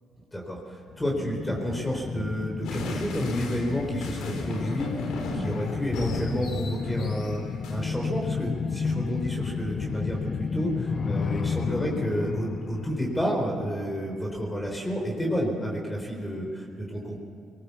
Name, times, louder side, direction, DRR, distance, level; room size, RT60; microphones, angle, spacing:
voice 1, 0.3-7.4 7.7-17.2, equal, 10° left, 0 dB, 4.3 m, -30 dB
sound 1, 0.9-14.2 14.5-14.6, left 5 dB, 50° left, 0.6 m, -32 dB
sound 2, 2.6-7.8, left 3 dB, 85° left, 3.6 m, -36 dB
22.5 x 20.0 x 7.2 m, 2.6 s
cardioid pair, 90°, 0 cm